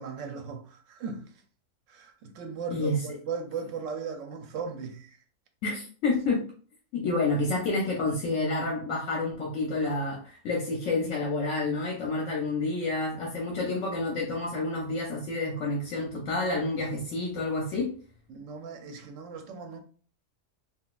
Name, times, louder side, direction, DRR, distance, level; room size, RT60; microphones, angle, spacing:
voice 1, 0.0-1.3 1.9-5.2 18.3-19.8, right 5 dB, 75° right, 0.9 m, -37 dB
voice 2, 5.6-6.4 6.9-17.9, left 2 dB, 75° left, 1.1 m, -29 dB
3.8 x 2.5 x 2.4 m
omnidirectional pair, 1.4 m